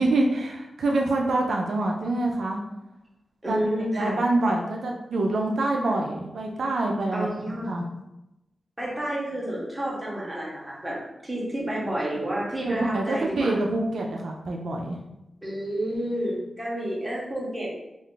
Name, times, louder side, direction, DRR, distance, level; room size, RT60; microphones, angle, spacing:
voice 1, 0.0-2.6 3.5-3.7 3.9-7.3 7.7-7.8 12.6-15.0, right 2 dB, 80° right, 0 dB, 0.3 m, -26 dB
voice 2, 3.4-4.2 7.1-7.7 8.8-11.0 11.2-13.5 15.4-17.7, right 1 dB, 10° right, -5 dB, 0.8 m, -30 dB
2.4 x 2.3 x 3.7 m, 0.93 s
wide cardioid pair, 160°, 0 cm